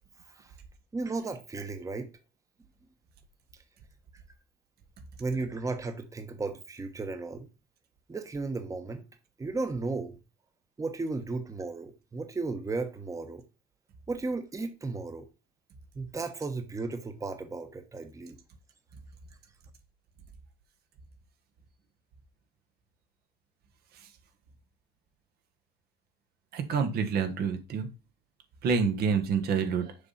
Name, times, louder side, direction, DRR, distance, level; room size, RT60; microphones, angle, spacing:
voice 1, 0.9-2.1 5.2-7.5 8.1-9.0 9.4-10.2 10.8-13.4 14.1-15.3 15.9-18.4, right 3 dB, 20° right, 1.1 m, -34 dB
voice 2, 26.5-27.9 28.6-29.9, right 6 dB, 70° right, 1.5 m, -27 dB
6.7 x 4.1 x 5.7 m
cardioid pair, 110°, 17 cm